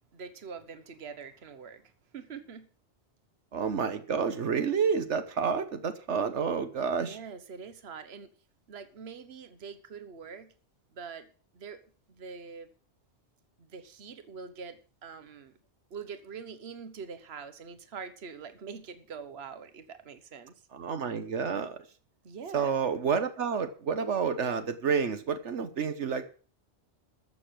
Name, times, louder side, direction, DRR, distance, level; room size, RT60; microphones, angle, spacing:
voice 1, 0.1-2.7 7.1-8.3 8.7-10.5 10.9-11.3 11.5-11.8 12.1-12.7 13.6-15.6 15.9-20.5 22.2-22.7, right 6 dB, 65° right, 10 dB, 1.4 m, -44 dB
voice 2, 3.5-7.2 20.7-21.8 22.5-26.3, right 6 dB, 90° right, 10 dB, 1.5 m, -29 dB
14.0 x 7.1 x 7.5 m, 0.40 s
omnidirectional pair, 1.2 m